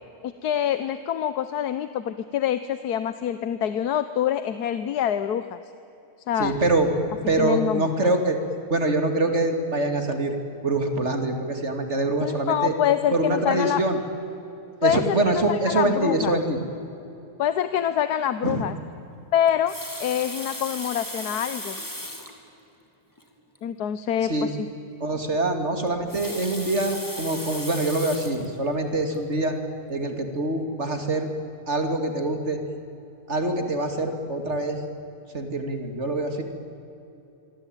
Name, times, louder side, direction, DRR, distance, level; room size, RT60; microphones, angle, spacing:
voice 1, 0.2-5.6 6.3-6.5 7.4-7.8 12.2-13.8 14.8-16.4 17.4-18.7 19.3-21.8 23.6-24.5, left 10 dB, 85° left, 12 dB, 1.4 m, -25 dB
voice 2, 6.4-6.9 7.3-8.4 8.7-10.3 10.6-12.7 13.1-14.0 14.8-16.7 18.4-18.7 24.3-24.5 25.0-29.5 29.9-31.3 31.7-32.6 33.3-34.8 35.3-36.4, right 2 dB, 45° right, 6 dB, 2.9 m, -24 dB
Water tap faucet, 19.5-22.4 23.2-23.3 23.6-23.7 25.9-28.5 29.1-29.3, left 1 dB, 10° left, 3.0 m, -36 dB
28.0 x 23.5 x 9.1 m, 2.9 s
omnidirectional pair, 1.6 m